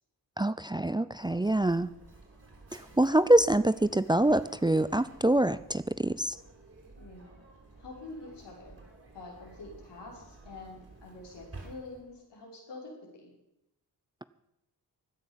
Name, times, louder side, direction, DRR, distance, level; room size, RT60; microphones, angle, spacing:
voice 1, 0.4-1.9 2.7-6.4, right 1 dB, 10° right, 15 dB, 0.6 m, -25 dB
Mechanisms, 1.1-12.2, right 3 dB, 35° right, 5.3 m, -53 dB
voice 2, 7.0-7.3 7.8-8.8 9.1-13.3, left 2 dB, 80° left, -2 dB, 5.5 m, -46 dB
15.5 x 9.9 x 7.3 m, 0.85 s
supercardioid pair, 50°, 41 cm